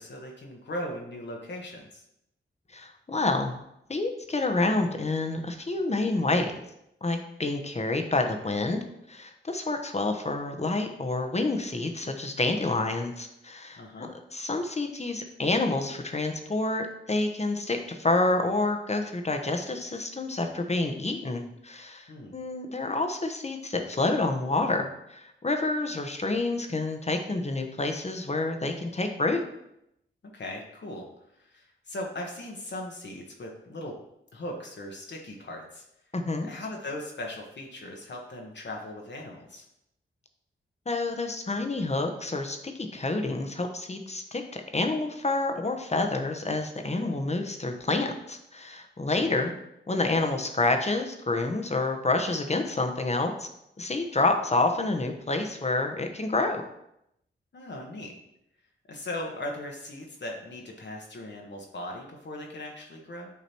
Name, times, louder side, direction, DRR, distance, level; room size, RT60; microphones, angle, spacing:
voice 1, 0.0-2.0 13.8-14.1 22.1-22.3 30.3-31.1 31.3-33.9 34.3-35.9 36.4-39.6 49.1-49.3 57.5-58.1 58.9-63.3, left 1 dB, 60° left, 0 dB, 1.2 m, -38 dB
voice 2, 2.7-3.6 3.9-6.5 7.0-8.8 9.1-29.4 36.1-36.5 40.9-49.5 49.9-53.5 53.8-56.6, left 2 dB, 30° left, 5 dB, 1.0 m, -28 dB
8.4 x 3.0 x 4.4 m, 0.81 s
cardioid pair, 50°, 21 cm